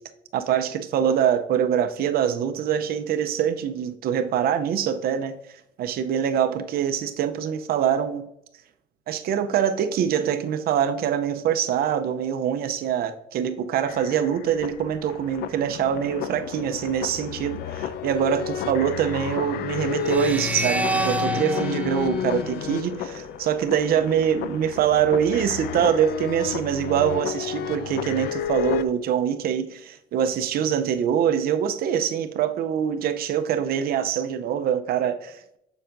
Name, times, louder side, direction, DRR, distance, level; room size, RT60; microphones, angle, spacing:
voice 1, 0.3-5.3 5.8-8.3 9.1-35.6, right 9 dB, 65° right, 0.6 m, -24 dB
sound 1, 13.8-28.9, left 9 dB, 70° left, 0.4 m, -31 dB
sound 2, 20.0-23.3, right 2 dB, 10° right, 0.3 m, -29 dB
7.1 x 6.9 x 2.6 m
cardioid pair, 110°, 17 cm